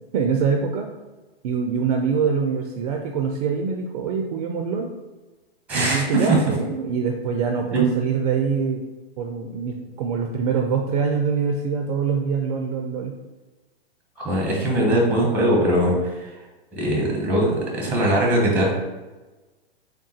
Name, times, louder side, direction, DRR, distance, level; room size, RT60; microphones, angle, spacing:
voice 1, 0.1-0.9 1.4-4.9 5.7-8.8 9.2-13.1 18.0-18.1, right 6 dB, 40° right, 3 dB, 0.4 m, -24 dB
voice 2, 5.7-6.4 7.7-7.9 14.2-16.3 16.7-18.7, right 1 dB, 5° right, -1 dB, 0.8 m, -21 dB
3.6 x 2.3 x 4.1 m, 1.2 s
hypercardioid pair, 115°, 31 cm